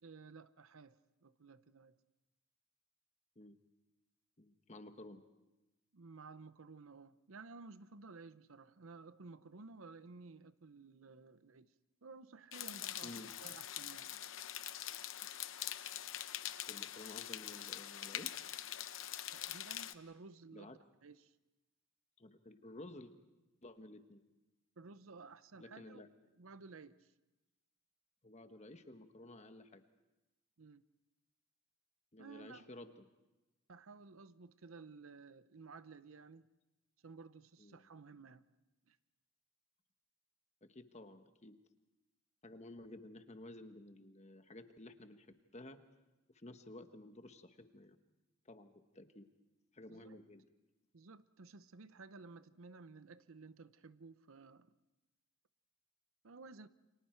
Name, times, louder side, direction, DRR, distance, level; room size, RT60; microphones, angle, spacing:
voice 1, 0.0-2.0 5.9-11.7 12.0-14.2 19.3-21.3 24.8-26.0 26.4-27.1 30.6-30.8 32.2-32.7 33.7-36.5 37.0-38.4 38.9-39.0 49.9-50.2 50.9-54.7 56.2-56.7, right 4 dB, 75° right, 0.8 m, -55 dB
voice 2, 4.4-5.2 13.0-13.3 16.7-18.4 20.5-20.8 22.2-23.1 23.6-24.2 25.6-26.1 28.2-29.8 32.1-33.0 37.6-37.9 40.6-41.6 42.4-45.3 45.5-45.8 46.3-48.0 48.4-49.3 49.7-50.4, left 1 dB, 30° left, 1.3 m, -53 dB
sound 1, 12.5-19.9, left 12 dB, 65° left, 0.8 m, -44 dB
29.5 x 25.5 x 4.6 m
head